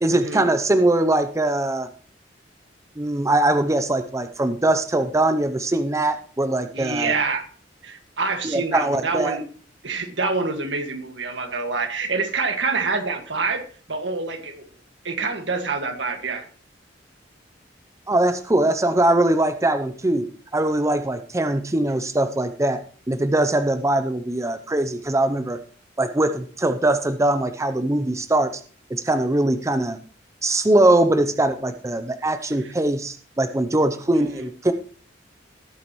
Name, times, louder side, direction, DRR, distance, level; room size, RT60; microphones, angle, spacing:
voice 1, 0.0-1.9 3.0-7.1 8.4-9.4 18.1-22.8 23.1-25.6 26.0-28.5 28.9-30.0 30.4-34.7, right 1 dB, 15° right, 9 dB, 0.6 m, -21 dB
voice 2, 6.7-7.5 7.8-9.4 9.8-14.6 15.0-16.5 32.6-32.7 34.1-34.5, right 4 dB, 75° right, 5 dB, 1.9 m, -26 dB
17.5 x 8.6 x 3.1 m, 0.43 s
head